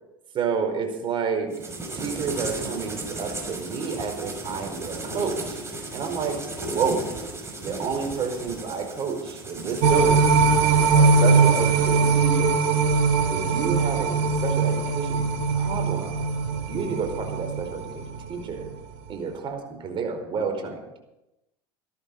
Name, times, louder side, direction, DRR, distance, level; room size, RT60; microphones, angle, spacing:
voice 1, 0.3-1.5 1.9-5.6 5.9-7.1 7.6-10.3 10.9-12.5 13.3-15.2 15.5-16.2 16.7-18.0 18.3-18.7 19.1-20.8, right 5 dB, 45° right, 5 dB, 4.7 m, -29 dB
sound 1, 1.5-12.2, right 2 dB, 20° right, 6.3 m, -36 dB
sound 2, 9.8-18.2 18.6-18.7, right 4 dB, 70° right, 2.6 m, -21 dB
16.5 x 13.0 x 5.5 m, 0.94 s
hypercardioid pair, 80°, 12 cm